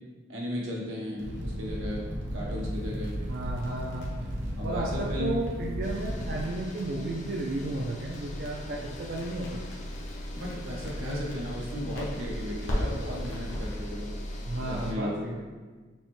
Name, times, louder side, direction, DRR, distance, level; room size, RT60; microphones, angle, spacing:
voice 1, 0.3-3.2 4.6-5.4 5.8-5.9 8.8-8.9 10.3-14.1 14.6-15.2, left 1 dB, 90° right, -3 dB, 1.0 m, -35 dB
Fire, 1.2-6.4, equal, 65° right, 0.7 m, -34 dB
sound 1, 2.5-13.9, equal, 75° left, 0.9 m, -41 dB
voice 2, 3.3-4.2 4.6-9.6 14.5-15.4, right 2 dB, 50° right, -1 dB, 0.4 m, -33 dB
sound 2, 5.8-14.9, equal, 40° left, 0.4 m, -39 dB
6.1 x 2.1 x 3.0 m, 1.4 s
head